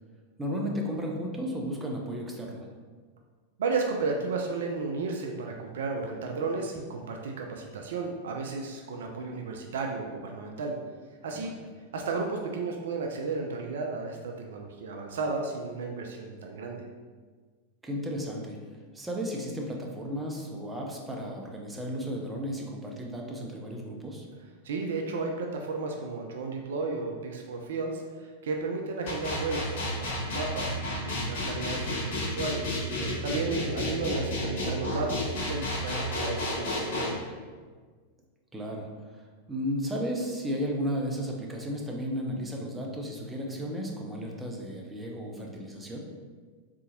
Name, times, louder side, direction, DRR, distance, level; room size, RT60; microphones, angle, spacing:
voice 1, 0.4-2.7 11.3-11.6 17.8-18.6 18.9-24.3 33.2-33.5 38.5-38.9 39.2-46.1, equal, 10° right, -1 dB, 0.5 m, -34 dB
voice 2, 3.6-10.7 11.2-11.5 11.9-16.8 24.6-37.3, right 3 dB, 60° right, 2 dB, 0.3 m, -33 dB
sound 1, 29.1-37.1, left 2 dB, 55° left, 1.0 m, -31 dB
3.7 x 2.7 x 2.6 m, 1.5 s
figure-of-eight pair, 90°, 0 cm